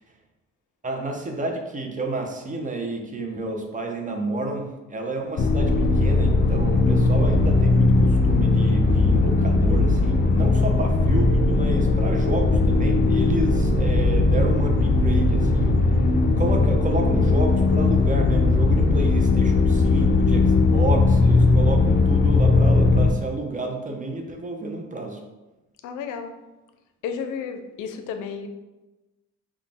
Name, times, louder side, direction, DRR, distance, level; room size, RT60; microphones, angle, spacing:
voice 1, 0.8-4.6 4.9-15.8 16.4-25.2, right 2 dB, 25° right, 2 dB, 0.6 m, -30 dB
sound 1, 5.4-23.1, left 3 dB, 35° left, 0.5 m, -19 dB
voice 2, 25.8-26.3 27.0-28.5, left 6 dB, 90° left, 7 dB, 0.5 m, -32 dB
3.9 x 2.4 x 3.4 m, 1.1 s
cardioid pair, 90°, 30 cm